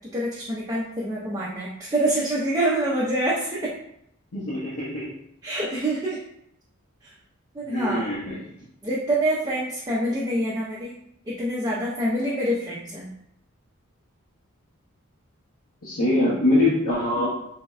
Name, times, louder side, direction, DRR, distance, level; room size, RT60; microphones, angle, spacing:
voice 1, 0.1-3.7 5.4-6.2 7.0-7.1 7.5-8.1 8.8-10.9 11.3-13.1, right 1 dB, 20° right, -6 dB, 0.4 m, -26 dB
voice 2, 4.3-5.1 7.7-8.4 15.8-17.3, left 1 dB, 85° left, -8 dB, 0.8 m, -23 dB
3.3 x 2.1 x 2.3 m, 0.75 s
head